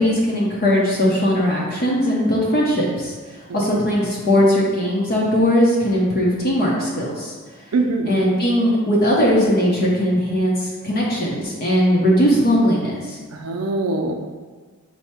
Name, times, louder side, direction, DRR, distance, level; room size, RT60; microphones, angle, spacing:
voice 1, 0.0-3.1 3.5-7.3 8.0-13.2, equal, 45° left, -4 dB, 0.7 m, -19 dB
voice 2, 7.7-8.1 13.3-14.1, right 3 dB, 85° right, 4 dB, 0.5 m, -22 dB
4.6 x 2.1 x 4.3 m, 1.4 s
head